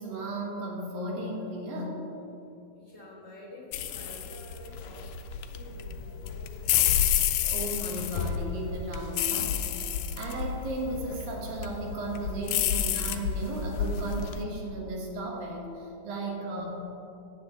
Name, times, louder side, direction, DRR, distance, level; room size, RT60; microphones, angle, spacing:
voice 1, 0.0-2.0 7.4-16.7, right 1 dB, 85° right, -1 dB, 3.4 m, -35 dB
voice 2, 2.7-5.2 5.5-7.0 12.6-13.0 16.2-16.7, left 1 dB, 5° right, -4 dB, 2.5 m, -49 dB
sound 1, 3.7-14.4, left 9 dB, 85° left, 2.3 m, -30 dB
16.5 x 9.8 x 3.3 m, 2.8 s
omnidirectional pair, 4.0 m